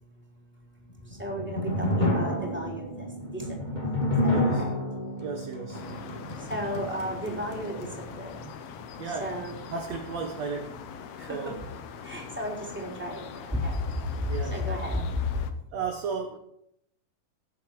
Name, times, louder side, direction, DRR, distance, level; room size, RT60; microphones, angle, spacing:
voice 1, 0.1-4.7 6.3-8.6 9.0-9.6 11.2-11.6 12.0-15.4, left 1 dB, 5° right, 3.1 m, -34 dB
sound 1, 1.0-8.2, left 1 dB, 20° left, 1.4 m, -30 dB
voice 2, 4.3-4.7 5.2-5.8 9.0-9.3 9.7-10.9 11.2-11.5 14.3-14.6 15.7-16.4, right 5 dB, 65° right, 1.8 m, -34 dB
sound 2, 5.7-15.5, left 7 dB, 70° left, 1.6 m, -42 dB
18.0 x 7.5 x 4.7 m
omnidirectional pair, 4.3 m